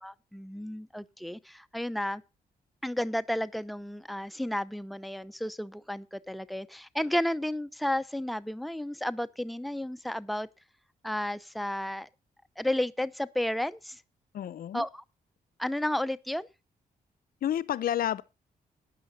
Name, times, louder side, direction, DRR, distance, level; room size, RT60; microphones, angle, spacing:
voice 1, 0.0-2.2 2.8-10.5 11.0-12.1 12.6-14.0 14.7-15.0 15.6-16.5, left 1 dB, ahead, 0.8 m, -32 dB
voice 2, 14.3-14.8 17.4-18.2, left 11 dB, 70° left, 0.7 m, -30 dB
12.5 x 9.2 x 4.1 m
cardioid pair, 85°, 15 cm